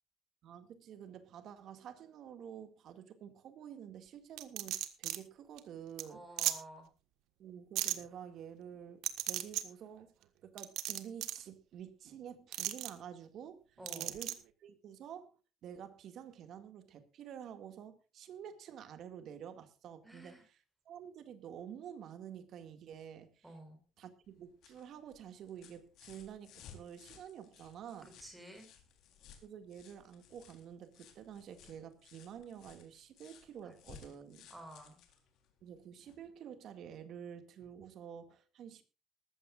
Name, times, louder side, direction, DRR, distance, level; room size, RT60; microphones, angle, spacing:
voice 1, 0.4-6.2 7.4-10.1 10.4-14.3 14.6-15.3 15.6-20.4 20.9-23.5 24.0-28.1 29.4-34.5 35.6-38.8, right 8 dB, 45° right, 2.1 m, -49 dB
sound 1, 4.4-5.2 5.6-5.7 6.0-6.1 6.4-6.6 7.8-8.0 9.0-9.6 10.6-11.4 12.5-12.9 13.9-14.3, right 14 dB, 70° right, 1.6 m, -35 dB
voice 2, 6.1-6.9 13.8-14.2 20.0-20.4 23.4-23.8 28.0-28.7 33.6-34.1 34.5-35.0, right 1 dB, 5° right, 4.5 m, -52 dB
sound 2, 24.2-36.3 37.6-37.7, left 7 dB, 55° left, 3.8 m, -59 dB
20.0 x 15.0 x 2.5 m
cardioid pair, 180°, 0 cm